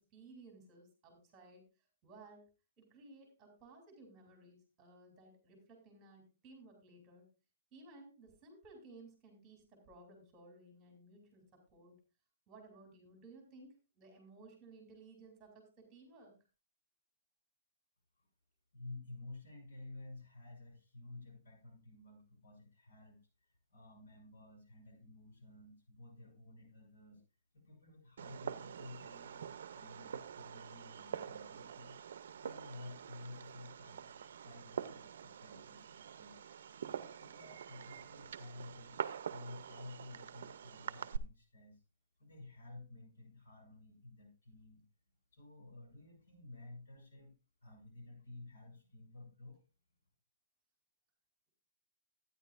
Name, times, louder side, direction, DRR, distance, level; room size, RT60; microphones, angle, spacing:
voice 1, 0.0-1.6 2.0-2.4 2.8-7.3 7.7-12.0 12.5-16.3, right 2 dB, 15° right, 2 dB, 3.0 m, -58 dB
voice 2, 18.7-27.2 27.5-32.0 32.3-36.4 36.8-39.0 39.3-41.8 42.2-44.8 45.3-47.3 47.6-49.6, left 2 dB, 85° left, 2 dB, 6.2 m, -53 dB
Fireworks, 28.2-41.2, right 8 dB, 65° right, 0.6 m, -45 dB
12.5 x 9.5 x 2.5 m, 0.31 s
hypercardioid pair, 165°, 0 cm